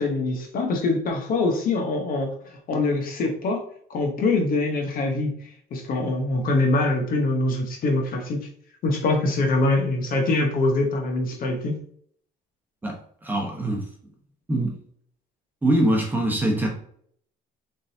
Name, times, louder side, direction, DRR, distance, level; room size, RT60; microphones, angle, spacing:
voice 1, 0.0-3.6 3.9-5.3 5.7-8.5 8.8-11.8, left 2 dB, 55° left, 3 dB, 0.9 m, -24 dB
voice 2, 12.8-13.9 14.5-14.7 15.6-16.7, right 1 dB, 10° right, -1 dB, 1.1 m, -23 dB
3.9 x 3.7 x 2.7 m, 0.62 s
cardioid pair, 110°, 17 cm